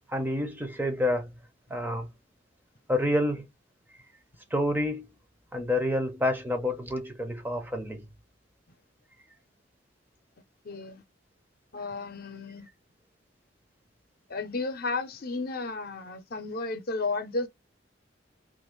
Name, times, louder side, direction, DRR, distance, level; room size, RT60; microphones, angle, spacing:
voice 1, 0.1-1.3 1.7-2.1 2.9-3.5 4.5-5.1 5.5-8.1, left 1 dB, 10° right, 0.6 m, -28 dB
voice 2, 10.6-11.0 11.7-12.7 14.3-17.5, left 3 dB, 55° left, 0.6 m, -33 dB
2.7 x 2.5 x 3.0 m
head